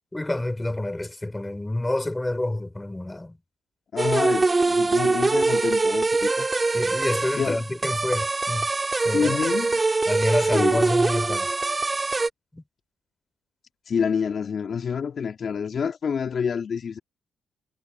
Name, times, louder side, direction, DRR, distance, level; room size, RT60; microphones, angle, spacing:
voice 1, 0.1-3.4 6.7-8.7 9.0-9.4 10.1-11.5 12.5-12.6, left 1 dB, 10° left, 3.5 m, -28 dB
voice 2, 3.9-6.5 7.4-7.6 9.1-9.8 10.5-10.9 13.9-17.0, left 6 dB, 50° left, 2.2 m, -27 dB
sound 1, 4.0-12.3, right 3 dB, 25° right, 2.7 m, -23 dB
cardioid pair, 90°, 0 cm